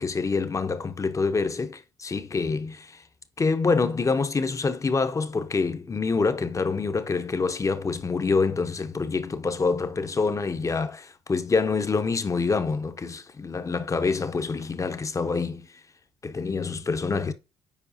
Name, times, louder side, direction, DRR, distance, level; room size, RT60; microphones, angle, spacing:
voice 1, 0.0-3.0 3.4-15.7 16.2-17.3, left 4 dB, 30° left, 0.9 m, -26 dB
7.2 x 4.9 x 2.7 m
supercardioid pair, 60°, 11 cm